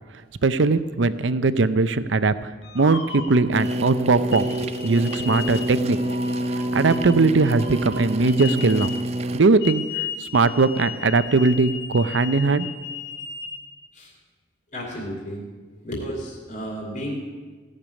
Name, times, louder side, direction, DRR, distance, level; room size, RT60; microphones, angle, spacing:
voice 1, 0.4-2.3 2.7-4.5 4.8-6.0 6.7-8.9 9.3-9.8 10.3-12.7, right 3 dB, 80° right, 13 dB, 0.6 m, -19 dB
sound 1, 2.6-3.8 4.3-9.1 9.6-13.6, left 7 dB, 80° left, 2.5 m, -36 dB
sound 2, 3.5-9.4, right 1 dB, 35° right, 0.4 m, -27 dB
voice 2, 5.1-5.6 13.9-14.1 14.7-15.4 15.8-17.2, equal, 45° left, -2 dB, 2.8 m, -34 dB
17.0 x 6.8 x 9.8 m, 1.4 s
head